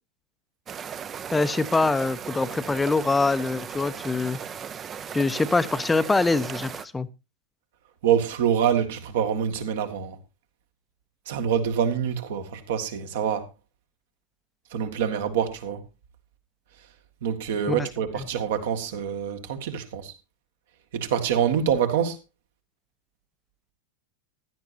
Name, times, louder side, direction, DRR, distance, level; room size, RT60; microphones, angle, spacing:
sound 1, 0.7-6.8, right 7 dB, 25° right, 0.7 m, -37 dB
voice 1, 1.3-4.4 5.1-7.1 17.7-17.9, left 3 dB, 10° left, 0.8 m, -24 dB
voice 2, 8.0-10.2 11.3-13.5 14.7-15.8 17.2-20.1 20.9-22.2, right 8 dB, 55° right, 1.9 m, -25 dB
16.0 x 11.5 x 2.8 m
figure-of-eight pair, 90°, 0 cm